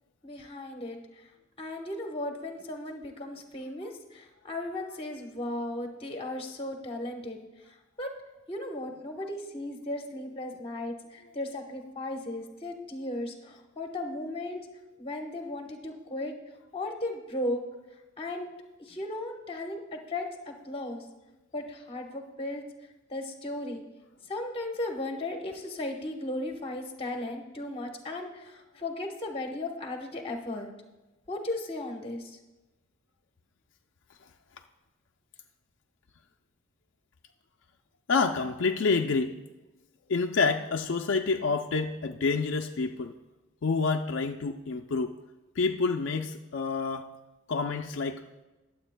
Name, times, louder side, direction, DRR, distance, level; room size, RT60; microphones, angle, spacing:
voice 1, 0.2-1.0 1.6-7.4 7.7-8.1 8.5-14.7 15.0-16.3 16.7-17.6 18.2-18.5 18.8-21.0 21.5-22.6 23.1-23.8 24.2-30.7 31.3-32.4, left 1 dB, 30° left, 3 dB, 1.1 m, -36 dB
voice 2, 38.1-39.4 40.1-43.1 43.6-45.2 45.6-47.1 47.5-48.2, left 4 dB, 65° left, 4 dB, 0.4 m, -28 dB
21.0 x 7.8 x 2.2 m, 1.1 s
head